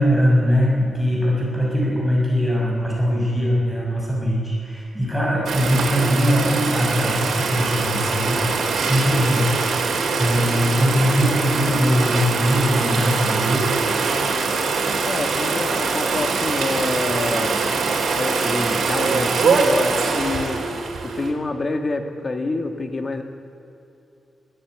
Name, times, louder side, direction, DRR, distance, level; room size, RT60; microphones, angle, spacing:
voice 1, 0.0-9.7 10.1-13.7, equal, ahead, -4 dB, 6.8 m, -21 dB
sound 1, 5.5-21.3, right 4 dB, 85° right, 3.6 m, -23 dB
voice 2, 15.0-17.6 18.2-23.2, left 2 dB, 30° left, 6 dB, 1.9 m, -27 dB
22.0 x 16.0 x 9.6 m, 2.7 s
wide cardioid pair, 160°, 0 cm